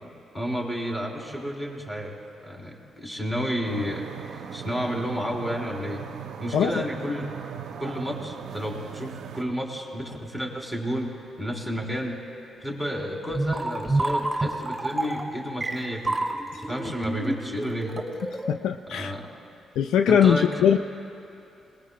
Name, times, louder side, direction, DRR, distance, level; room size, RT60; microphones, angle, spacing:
voice 1, 0.0-6.0 6.4-7.3 7.8-11.1 11.4-12.2 12.6-16.2 16.7-18.0 18.9-19.3 20.1-20.6, equal, 15° left, -1 dB, 3.3 m, -31 dB
sound 1, 3.6-9.4, right 7 dB, 80° right, 0.6 m, -39 dB
voice 2, 6.5-6.8 18.5-19.1 19.8-20.8, left 8 dB, 85° left, 8 dB, 0.4 m, -21 dB
sound 2, 13.3-18.5, right 2 dB, 20° right, 1.5 m, -28 dB
22.5 x 20.0 x 2.2 m, 2.6 s
cardioid pair, 75°, 0 cm